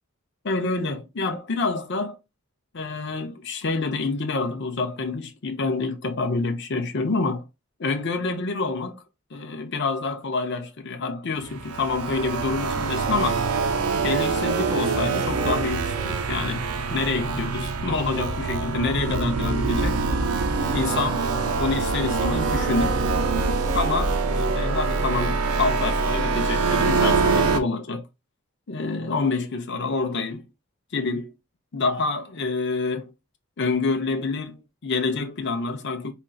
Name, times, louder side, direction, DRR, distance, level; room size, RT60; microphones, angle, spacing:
voice 1, 0.4-2.2 2.7-7.4 7.8-9.0 9.3-13.4 13.9-20.0 20.7-23.0 23.7-24.1 24.5-28.0 28.7-30.4 30.9-31.3 31.7-33.1 33.6-36.1, left 3 dB, 55° left, 0.7 m, -27 dB
sound 1, 11.4-27.6, right 4 dB, 90° right, 0.6 m, -24 dB
4.0 x 2.9 x 2.2 m
head